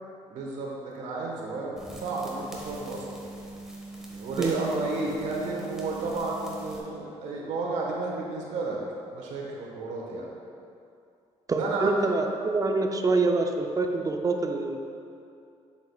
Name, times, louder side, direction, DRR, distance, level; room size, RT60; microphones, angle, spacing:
voice 1, 0.3-3.2 4.1-8.8 9.1-10.3 11.5-12.1, right 3 dB, 80° right, -2 dB, 1.3 m, -32 dB
sound 1, 1.8-6.8, right 2 dB, 5° right, 1.5 m, -42 dB
voice 2, 11.5-14.8, right 3 dB, 30° right, 4 dB, 0.6 m, -26 dB
7.6 x 7.1 x 2.4 m, 2.5 s
cardioid pair, 85°, 12 cm